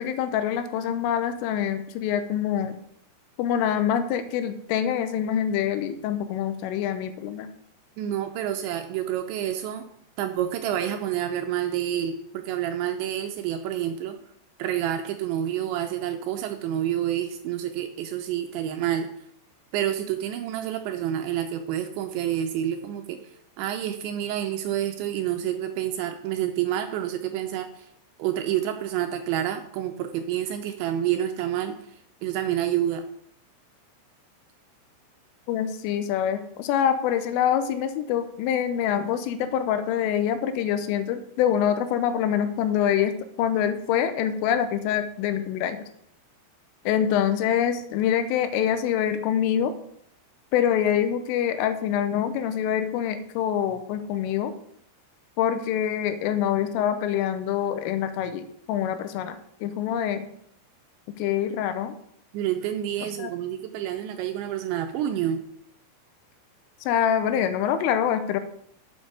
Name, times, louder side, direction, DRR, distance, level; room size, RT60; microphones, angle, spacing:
voice 1, 0.0-2.8 3.4-7.5 35.5-45.8 46.9-49.7 50.5-54.5 55.4-60.3 61.2-61.9 63.2-63.3 66.9-68.4, left 9 dB, 85° left, 10 dB, 3.3 m, -25 dB
voice 2, 8.0-9.8 10.2-14.2 14.6-19.1 19.7-23.2 23.6-27.9 28.2-31.8 32.2-33.0 62.3-65.4, right 11 dB, 80° right, 6 dB, 2.7 m, -28 dB
7.4 x 7.0 x 6.4 m, 0.70 s
omnidirectional pair, 5.8 m